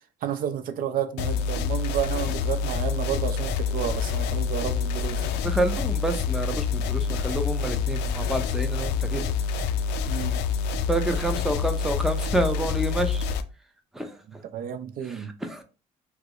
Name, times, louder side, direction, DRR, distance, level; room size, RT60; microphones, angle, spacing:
voice 1, 0.2-5.4 10.1-10.4 14.5-15.3, right 9 dB, 60° right, 0.4 m, -31 dB
sound 1, 1.2-13.4, left 6 dB, 85° left, 0.4 m, -27 dB
voice 2, 5.4-9.2 10.9-13.2 13.9-14.2 15.0-15.6, right 1 dB, ahead, 0.5 m, -28 dB
4.5 x 2.0 x 2.4 m
cardioid pair, 110°, 17 cm